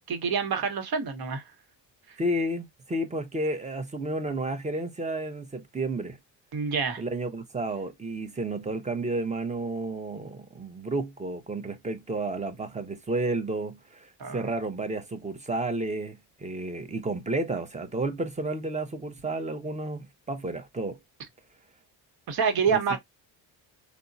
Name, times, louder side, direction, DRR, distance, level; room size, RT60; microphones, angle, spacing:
voice 1, 0.0-1.4 6.5-7.0 14.2-14.5 22.3-23.0, right 6 dB, 55° right, 1.1 m, -27 dB
voice 2, 2.2-6.2 7.0-21.0 22.7-23.0, right 2 dB, 15° right, 0.7 m, -31 dB
3.5 x 2.1 x 2.5 m
cardioid pair, 90°, 43 cm